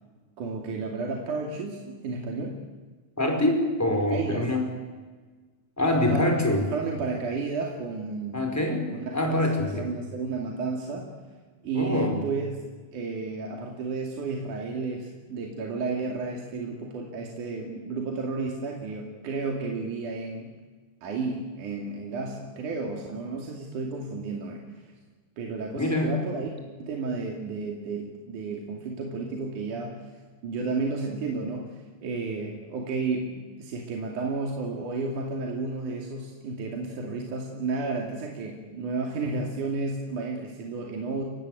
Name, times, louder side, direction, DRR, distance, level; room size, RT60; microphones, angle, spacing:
voice 1, 0.4-2.6 3.9-4.5 5.9-8.5 8.9-11.1 11.6-12.5 12.9-20.5 21.0-24.9 25.4-26.5 26.8-30.1 30.4-41.2, right 3 dB, 70° right, 0 dB, 3.9 m, -32 dB
voice 2, 3.2-4.7 5.8-6.6 8.3-9.9 11.7-12.2 25.7-26.2, left 1 dB, 5° left, 2 dB, 4.4 m, -25 dB
30.0 x 16.0 x 9.1 m, 1.4 s
omnidirectional pair, 3.8 m